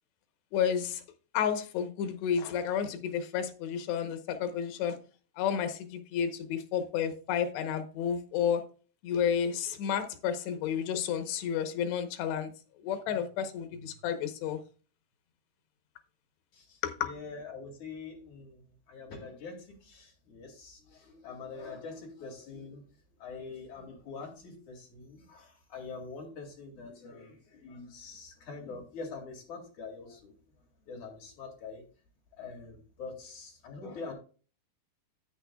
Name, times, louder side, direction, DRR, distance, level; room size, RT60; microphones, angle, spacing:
voice 1, 0.5-1.0 1.3-5.0 5.4-8.6 9.0-12.5 12.8-14.6 16.8-17.1, left 8 dB, 85° left, 3.1 m, -31 dB
voice 2, 16.5-22.8 23.2-30.3 30.9-31.8 32.4-34.1, left 4 dB, 50° left, 3.5 m, -44 dB
11.0 x 8.7 x 2.3 m
omnidirectional pair, 4.7 m